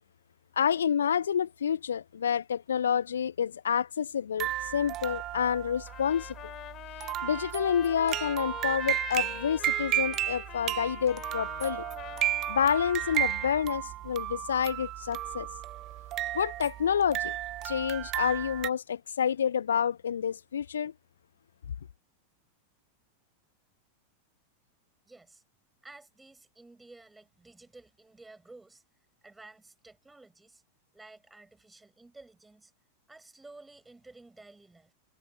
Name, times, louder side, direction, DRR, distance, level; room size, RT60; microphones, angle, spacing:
voice 1, 0.6-6.3 7.2-11.8 12.5-15.5 16.3-17.3 17.6-20.9, left 8 dB, 65° left, 0.4 m, -28 dB
sound 1, 4.4-18.7, right 14 dB, 35° right, 0.4 m, -34 dB
Trumpet, 5.9-13.6, left 13 dB, 30° left, 5.4 m, -44 dB
voice 2, 25.0-25.4 25.8-28.8 29.2-30.6 30.9-32.7 33.1-34.9, right 2 dB, 10° right, 5.7 m, -53 dB
figure-of-eight pair, 90°, 0 cm